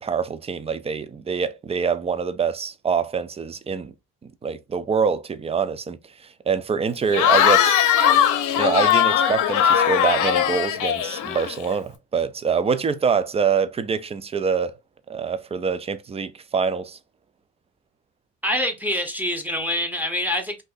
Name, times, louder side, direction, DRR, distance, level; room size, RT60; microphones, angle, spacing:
voice 1, 0.0-3.9 4.2-7.8 8.6-14.8 15.1-17.0, right 6 dB, 20° right, 0.3 m, -25 dB
Cheering / Crowd, 7.1-11.7, left 9 dB, 80° left, 0.6 m, -19 dB
voice 2, 18.4-20.6, left 1 dB, 5° right, 0.8 m, -25 dB
2.6 x 2.6 x 3.7 m
cardioid pair, 90°, 30 cm